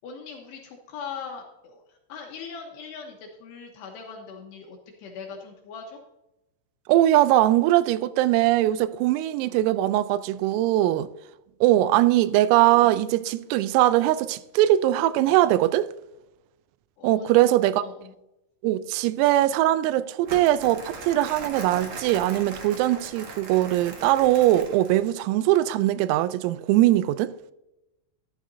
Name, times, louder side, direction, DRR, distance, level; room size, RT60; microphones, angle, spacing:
voice 1, 0.0-6.0 17.0-17.4 17.8-18.1, left 5 dB, 75° left, 2.7 m, -40 dB
voice 2, 6.9-11.1 11.6-15.9 17.0-17.8 18.6-27.3, right 14 dB, 90° right, 3.3 m, -21 dB
Crumpling crinkling, 20.3-25.1, right 3 dB, 65° right, 1.7 m, -39 dB
12.5 x 11.5 x 2.7 m
omnidirectional pair, 5.9 m